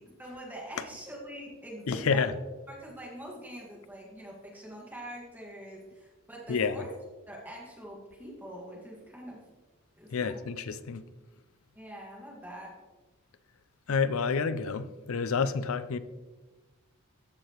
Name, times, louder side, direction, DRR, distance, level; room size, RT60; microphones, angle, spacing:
voice 1, 0.0-2.3 2.7-7.0 7.3-9.4 10.0-10.5 11.7-12.8, right 1 dB, 10° right, 1.8 m, -44 dB
voice 2, 1.9-2.3 6.5-6.8 10.1-11.0 13.9-16.0, left 5 dB, 70° left, 0.5 m, -29 dB
14.0 x 4.8 x 3.1 m
head